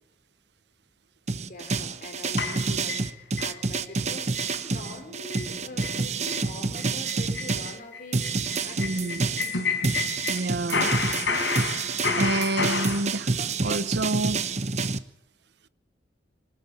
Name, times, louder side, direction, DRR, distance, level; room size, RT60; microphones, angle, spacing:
sound 1, 1.3-7.8 8.1-15.0, right 4 dB, 40° right, 0.9 m, -28 dB
voice 1, 1.5-9.7, left 1 dB, 45° left, 4.9 m, -43 dB
sound 2, 2.4-3.5 3.9-4.0 4.3-4.6 4.9-5.0 5.3-5.5 5.8-6.0 6.3-6.4 6.8-10.4 10.7-13.0, left 4 dB, 85° left, 5.0 m, -29 dB
voice 2, 8.8-9.2 10.3-10.9 12.2-13.3 13.6-14.5, right 2 dB, 65° right, 0.9 m, -28 dB
23.0 x 13.0 x 9.2 m
head